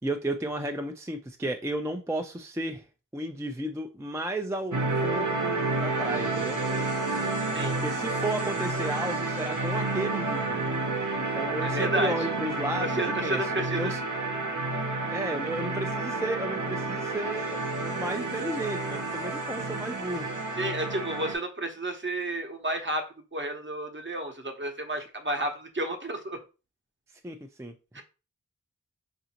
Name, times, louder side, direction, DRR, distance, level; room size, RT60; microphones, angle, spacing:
voice 1, 0.0-2.8 3.1-6.6 7.7-10.7 11.1-13.4 13.8-14.0 15.1-20.3 27.2-28.0, right 1 dB, 10° right, 4 dB, 0.3 m, -33 dB
sound 1, 4.7-21.4, right 3 dB, 65° right, 0.8 m, -30 dB
voice 2, 11.6-12.3 12.8-13.9 20.6-26.4 27.9-28.0, right 1 dB, 35° right, 4 dB, 0.8 m, -31 dB
4.9 x 2.5 x 2.8 m, 0.32 s
wide cardioid pair, 60°, 33 cm